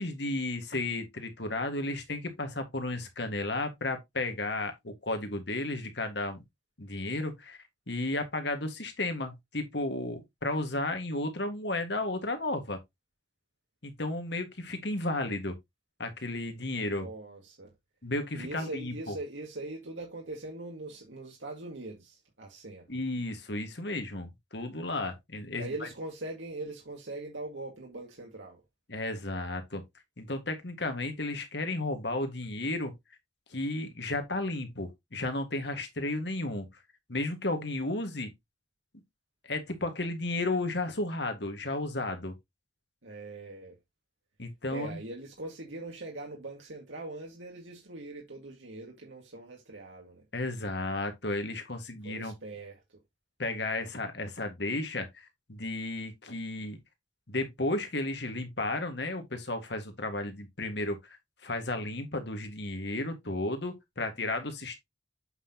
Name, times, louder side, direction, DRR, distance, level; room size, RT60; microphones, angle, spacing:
voice 1, 0.0-6.4 6.8-7.6 7.9-12.8 13.8-15.6 16.0-17.1 18.0-19.2 22.9-25.7 28.9-29.8 30.2-32.9 33.5-36.7 37.1-38.3 39.4-42.4 44.4-45.0 50.3-52.3 53.4-56.8 57.3-61.2 61.4-64.8, left 2 dB, 65° left, 1.8 m, -33 dB
voice 2, 16.8-17.7 18.3-22.9 25.5-28.6 43.0-43.8 44.7-50.3 52.0-53.0, right 2 dB, 85° right, 1.9 m, -42 dB
8.0 x 5.8 x 2.9 m
head